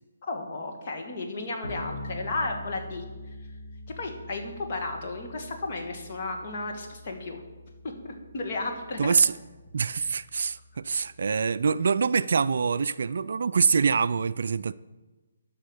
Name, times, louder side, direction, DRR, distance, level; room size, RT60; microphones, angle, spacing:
voice 1, 0.2-3.0 4.0-7.4 7.8-9.1 10.0-10.1, left 2 dB, 45° left, 2.0 m, -34 dB
Bass guitar, 1.6-11.3, left 1 dB, 80° left, 3.6 m, -44 dB
voice 2, 9.0-9.3 9.7-14.7, right 5 dB, 60° right, 0.3 m, -25 dB
11.5 x 5.7 x 6.7 m
figure-of-eight pair, 140°, 0 cm